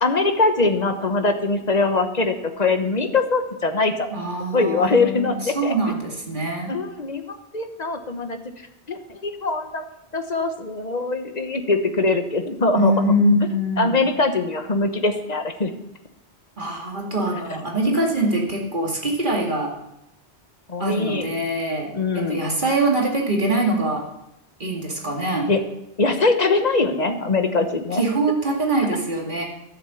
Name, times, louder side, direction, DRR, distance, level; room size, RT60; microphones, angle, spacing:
voice 1, 0.0-4.1 4.5-5.7 6.7-8.4 8.9-9.8 10.1-12.9 13.8-15.7 17.8-18.0 20.7-21.3 21.9-22.4 25.5-25.6 26.0-28.0, left 3 dB, 40° left, 7 dB, 1.2 m, -22 dB
voice 2, 4.1-6.7 12.7-14.0 16.6-19.7 20.8-24.0 24.6-25.5 27.9-29.4, right 1 dB, 45° right, -1 dB, 2.4 m, -23 dB
13.0 x 7.4 x 7.0 m, 0.86 s
omnidirectional pair, 1.1 m